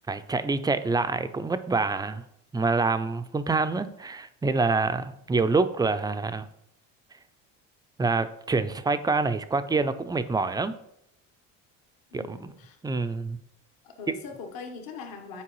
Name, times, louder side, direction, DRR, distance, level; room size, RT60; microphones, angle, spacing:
voice 1, 0.1-2.2 2.5-6.5 8.0-10.7 12.1-12.5 12.8-13.4, right 3 dB, 10° right, 10 dB, 0.4 m, -26 dB
voice 2, 12.1-12.8 13.8-15.4, left 5 dB, 60° left, 4 dB, 1.2 m, -41 dB
8.6 x 4.6 x 3.1 m, 0.77 s
supercardioid pair, 80°, 39 cm